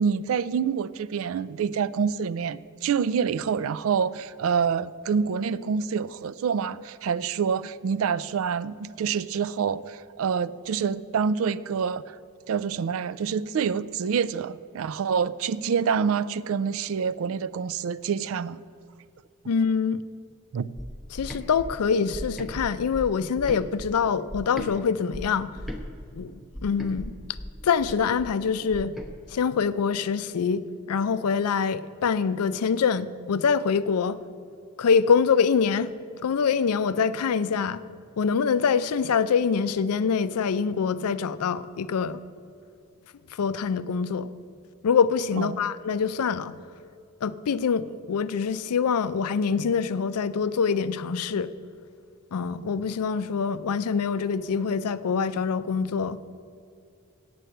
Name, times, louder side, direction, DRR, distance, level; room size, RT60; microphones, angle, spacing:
voice 1, 0.0-12.2 12.5-18.6 20.5-20.7 45.4-45.6, right 6 dB, 65° right, 18 dB, 0.3 m, -27 dB
voice 2, 19.5-20.0 21.1-25.5 26.2-27.1 27.6-28.9 29.3-34.2 34.8-35.9 36.2-37.8 38.2-42.2 43.3-44.3 44.8-46.5 47.2-51.5 52.3-56.2, left 6 dB, 85° left, 14 dB, 0.4 m, -25 dB
sound 1, 20.8-24.7 25.1-29.1, left 1 dB, ahead, 0.7 m, -38 dB
8.5 x 7.8 x 7.9 m, 2.4 s
head